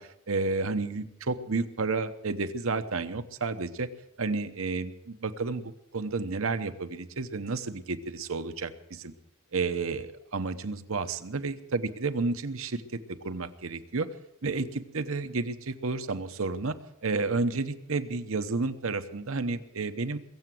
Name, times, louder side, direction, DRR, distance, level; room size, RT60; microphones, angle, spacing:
voice 1, 0.0-3.9 4.2-9.1 9.5-13.0 13.2-14.1 14.4-16.7 17.0-20.2, right 3 dB, 70° right, 10 dB, 0.9 m, -31 dB
21.5 x 8.0 x 7.7 m, 0.84 s
head